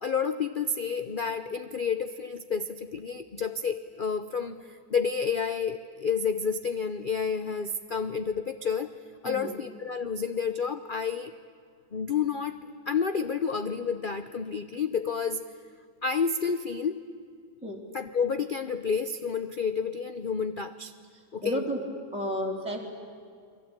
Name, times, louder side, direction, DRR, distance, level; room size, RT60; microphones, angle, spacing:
voice 1, 0.0-8.9 9.2-11.3 11.9-12.6 12.9-15.4 16.0-17.1 17.9-20.9 21.3-21.6, left 6 dB, 55° left, 9 dB, 0.6 m, -30 dB
voice 2, 9.2-9.5 17.6-17.8 21.4-21.8 22.1-22.9, equal, 5° right, -2 dB, 3.3 m, -31 dB
29.5 x 22.5 x 8.9 m, 2.2 s
omnidirectional pair, 2.0 m